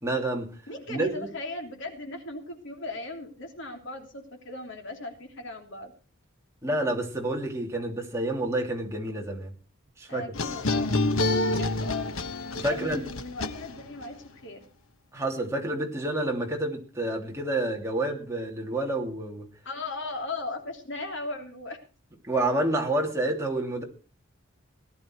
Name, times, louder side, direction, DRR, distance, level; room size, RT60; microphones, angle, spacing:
voice 1, 0.0-0.5 0.9-1.3 6.6-9.5 10.0-10.2 12.6-13.0 15.1-19.5 22.2-23.8, right 1 dB, 15° right, 0 dB, 2.9 m, -29 dB
voice 2, 0.7-5.9 10.1-12.1 12.7-14.7 19.6-21.8, left 2 dB, 60° left, 4 dB, 3.2 m, -38 dB
sound 1, 10.3-14.0, left 2 dB, 80° left, 1.3 m, -28 dB
18.0 x 11.0 x 4.6 m, 0.36 s
head